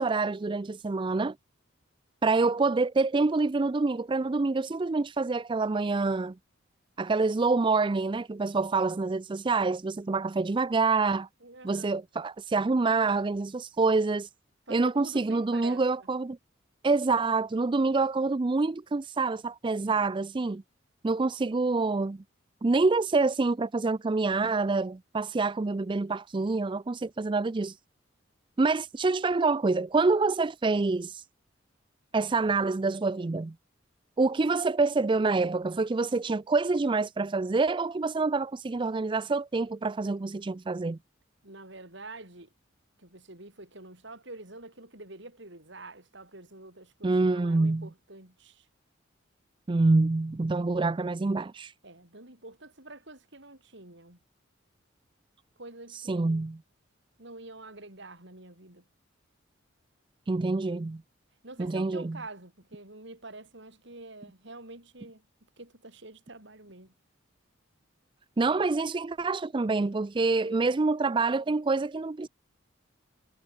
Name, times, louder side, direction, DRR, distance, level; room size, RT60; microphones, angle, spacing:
voice 1, 0.0-1.4 2.2-6.3 7.0-11.3 11.6-14.3 14.7-16.4 16.8-20.6 21.0-22.2 22.6-27.8 28.6-31.2 32.1-33.5 34.2-41.0 47.0-47.9 49.7-51.7 55.9-56.6 60.3-61.0 61.6-62.2 68.4-72.3, right 3 dB, 25° right, 0.4 m, -26 dB
voice 2, 11.4-12.0 14.7-16.1 41.4-42.5 43.0-48.7 51.8-54.2 55.6-56.5 57.2-58.9 61.4-65.2 65.6-66.9 70.3-70.8, right 2 dB, 60° right, 6.9 m, -47 dB
head